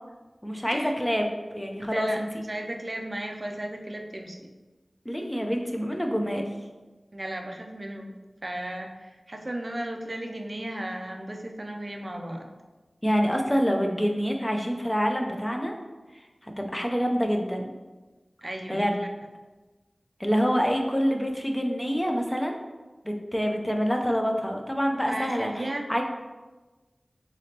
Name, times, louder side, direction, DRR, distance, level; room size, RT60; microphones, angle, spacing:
voice 1, 0.4-2.3 5.1-6.5 13.0-15.7 16.4-17.7 18.7-19.0 20.2-22.6 23.0-26.0, equal, 15° left, 2 dB, 0.6 m, -26 dB
voice 2, 1.8-4.5 7.1-8.1 8.4-12.5 18.4-18.8 25.0-25.8, right 1 dB, 40° right, 2 dB, 0.5 m, -35 dB
3.9 x 3.4 x 2.8 m, 1.2 s
wide cardioid pair, 45°, 0 cm